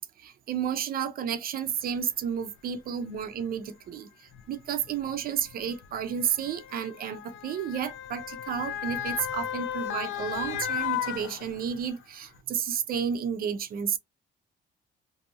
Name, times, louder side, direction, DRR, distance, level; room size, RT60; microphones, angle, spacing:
voice 1, 0.2-14.0, right 8 dB, 50° right, 0.5 m, -32 dB
Motor vehicle (road) / Siren, 2.0-2.1 3.0-3.2 4.3-11.9 12.4-12.5, left 10 dB, 85° left, 0.5 m, -35 dB
2.6 x 2.5 x 2.7 m
cardioid pair, 145°, 19 cm